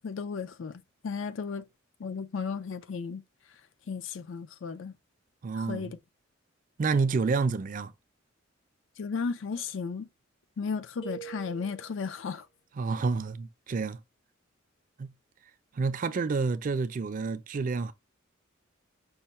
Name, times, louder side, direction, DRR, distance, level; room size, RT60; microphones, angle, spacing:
voice 1, 0.0-1.6 2.0-3.2 3.9-4.9 5.6-6.0 9.0-10.1 10.6-12.5, left 5 dB, 65° left, 0.4 m, -34 dB
voice 2, 5.4-5.9 6.8-7.9 12.8-14.0 15.0-15.1 15.7-17.9, right 4 dB, 40° right, 0.4 m, -29 dB
sound 1, 11.0-12.2, right 11 dB, 85° left, 1.9 m, -44 dB
5.5 x 2.1 x 4.1 m
head